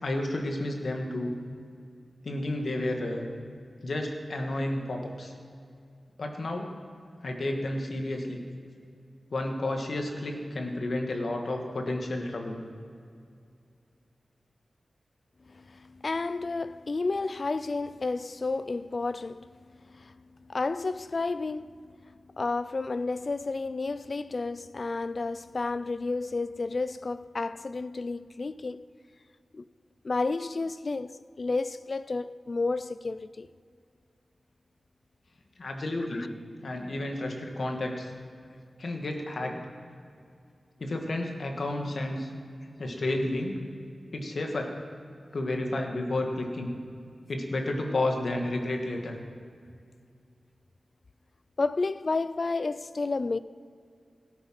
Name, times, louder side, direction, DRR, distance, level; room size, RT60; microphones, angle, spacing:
voice 1, 0.0-1.3 2.2-3.3 3.8-5.3 6.2-6.7 7.2-8.4 9.3-12.6 35.6-36.3 36.6-38.1 38.8-39.6 40.8-42.3 42.8-43.6 44.1-44.8 45.3-46.7 47.3-49.2, left 1 dB, 65° left, 1.9 m, -31 dB
voice 2, 15.5-28.9 29.5-29.7 30.0-33.5 36.1-36.3 51.6-53.4, left 3 dB, 50° left, 0.4 m, -31 dB
17.0 x 9.6 x 6.0 m
wide cardioid pair, 65°, 0 cm